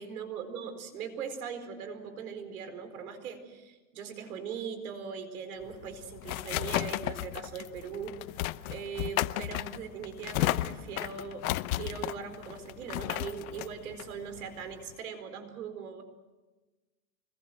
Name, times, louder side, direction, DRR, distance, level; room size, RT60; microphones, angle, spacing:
voice 1, 0.0-11.5 11.8-16.0, right 7 dB, 90° right, 9 dB, 4.6 m, -40 dB
sound 1, 5.6-14.9, left 16 dB, 75° left, 1.0 m, -34 dB
25.5 x 21.5 x 7.7 m, 1.2 s
supercardioid pair, 130°, 42 cm